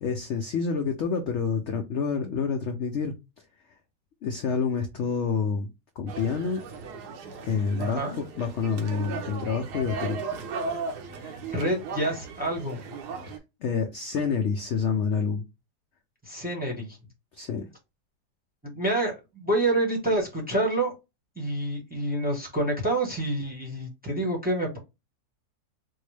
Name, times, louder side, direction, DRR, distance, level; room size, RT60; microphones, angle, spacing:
voice 1, 0.0-3.1 4.2-5.7 6.0-6.6 7.4-10.2 13.3-15.4 17.3-17.7, left 5 dB, 70° left, 0.7 m, -28 dB
sound 1, 6.1-13.4, right 4 dB, 80° right, 1.3 m, -36 dB
voice 2, 7.8-8.2 11.2-12.8 16.2-17.0 18.7-20.9 21.4-24.8, right 1 dB, 5° right, 0.8 m, -28 dB
4.4 x 2.0 x 3.2 m
omnidirectional pair, 1.7 m